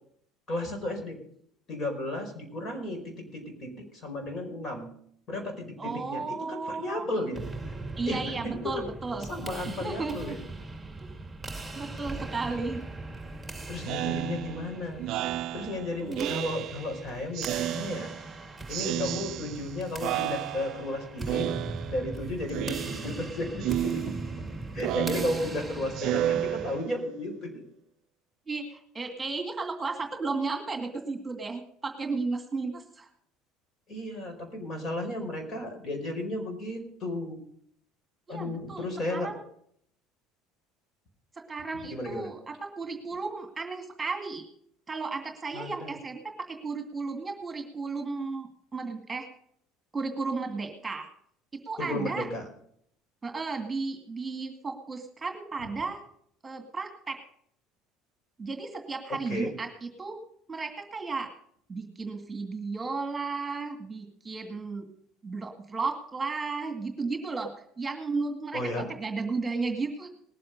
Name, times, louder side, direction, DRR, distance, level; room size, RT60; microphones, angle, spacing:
voice 1, 0.5-1.2 1.7-4.9 5.3-7.4 8.1-8.9 9.2-10.4 13.7-15.0 15.5-18.1 18.7-21.6 21.9-24.2 24.7-27.6 33.9-37.4 38.3-39.3 41.9-42.3 45.5-46.0 51.8-52.5 59.1-59.5 68.5-68.9, left 1 dB, 45° left, 4 dB, 4.9 m, -34 dB
voice 2, 5.8-7.1 8.0-9.3 9.8-10.4 11.8-12.8 16.0-16.3 28.5-33.1 38.3-39.4 41.4-44.5 44.9-49.3 49.9-51.1 51.7-52.3 53.2-56.0 56.4-57.2 58.4-60.2 60.5-61.3 61.7-64.9 65.2-67.5 67.8-68.6 68.9-70.1, right 4 dB, 20° right, 4 dB, 2.2 m, -34 dB
sound 1, 7.3-26.8, right 2 dB, 5° right, 2.3 m, -40 dB
Speech synthesizer, 13.8-17.0 17.4-18.4 18.7-19.7 20.0-20.9 21.3-22.2 22.5-23.3 23.6-27.2, right 12 dB, 60° right, 0.4 m, -32 dB
19.5 x 7.7 x 5.3 m, 0.66 s
supercardioid pair, 90°, 0 cm